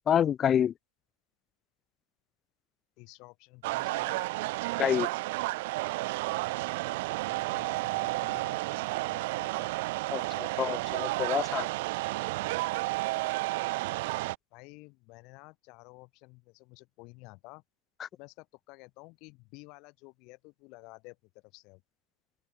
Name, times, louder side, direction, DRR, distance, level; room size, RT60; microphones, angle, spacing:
voice 1, 0.1-0.7 4.8-5.1 10.1-11.7 18.0-18.1, left 9 dB, 25° left, 0.4 m, -27 dB
voice 2, 3.0-4.3 7.2-9.7 14.5-17.6 18.1-21.8, left 27 dB, 40° left, 5.4 m, -52 dB
sound 1, 3.6-14.4, right 21 dB, 50° right, 0.5 m, -32 dB
open air
figure-of-eight pair, 90°, 0 cm